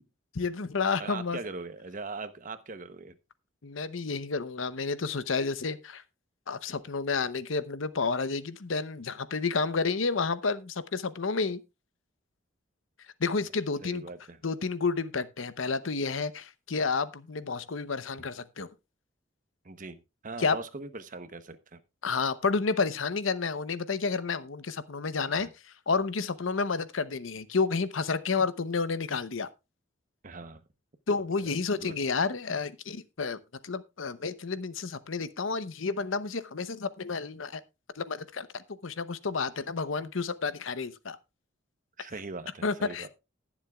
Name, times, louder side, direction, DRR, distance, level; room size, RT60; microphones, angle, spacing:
voice 1, 0.3-1.4 3.6-6.0 6.5-11.6 13.2-14.1 14.4-18.7 20.4-20.6 22.0-25.5 25.9-29.5 31.1-37.6 38.0-41.2 42.6-43.1, left 4 dB, 80° left, 0.8 m, -30 dB
voice 2, 1.0-3.1 13.8-14.4 19.6-21.8 25.4-25.5 30.2-30.6 31.7-31.9 42.0-43.1, right 3 dB, 40° right, 0.9 m, -41 dB
20.0 x 7.3 x 2.4 m
head